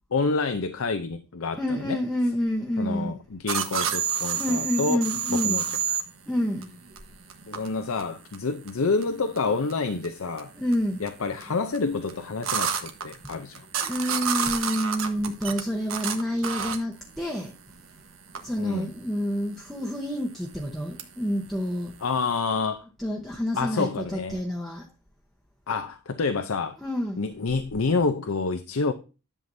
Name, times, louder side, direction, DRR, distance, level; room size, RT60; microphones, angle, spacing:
voice 1, 0.1-2.0 2.8-5.6 7.5-10.5 11.0-13.6 18.6-18.9 22.0-22.8 23.6-24.4 25.7-26.8 27.2-28.9, left 4 dB, 90° left, 0.7 m, -28 dB
voice 2, 1.5-3.2 4.3-5.6 6.3-6.7 10.5-11.0 13.8-17.6 18.4-21.9 23.0-24.9 26.8-27.3, equal, ahead, 0.9 m, -28 dB
sound 1, 3.5-22.4, right 7 dB, 80° right, 1.3 m, -31 dB
11.0 x 7.5 x 2.7 m
head